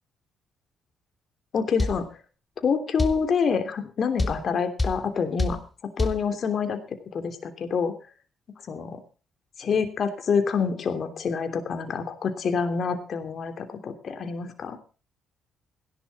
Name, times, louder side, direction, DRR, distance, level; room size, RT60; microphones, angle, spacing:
voice 1, 1.5-2.0 2.6-5.6 6.0-6.8 7.1-7.9 8.7-9.0 9.6-14.8, left 6 dB, 55° left, 8 dB, 3.0 m, -27 dB
sound 1, 1.8-2.0 3.0-3.2 4.2-4.4 4.8-5.0 5.4-5.6 6.0-6.2, left 2 dB, 15° left, 3.0 m, -24 dB
17.0 x 11.5 x 4.2 m, 0.36 s
supercardioid pair, 60°, 0 cm